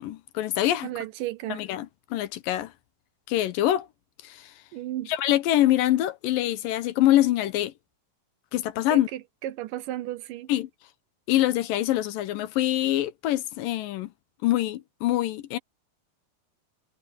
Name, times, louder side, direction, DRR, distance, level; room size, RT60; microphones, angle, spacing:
voice 1, 0.0-0.9 1.5-2.7 3.3-3.9 4.2-4.5 5.1-7.7 8.5-9.1 10.5-10.7 11.3-14.1 14.4-15.6, left 14 dB, 75° left, 2.5 m, -25 dB
voice 2, 0.8-1.6 4.7-5.1 8.9-10.5, right 14 dB, 75° right, 2.2 m, -34 dB
omnidirectional pair, 4.2 m